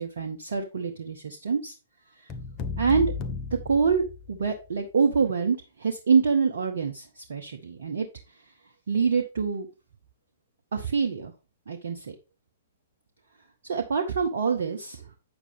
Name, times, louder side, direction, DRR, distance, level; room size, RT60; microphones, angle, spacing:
voice 1, 0.0-1.7 2.2-2.3 2.8-3.1 3.6-8.1 8.9-9.7 10.7-11.3 11.7-12.2 13.6-15.1, right 5 dB, 60° right, 3 dB, 1.0 m, -26 dB
sound 1, 2.3-4.6, left 5 dB, 25° left, 0.9 m, -34 dB
8.8 x 6.5 x 3.5 m, 0.30 s
figure-of-eight pair, 115°, 0 cm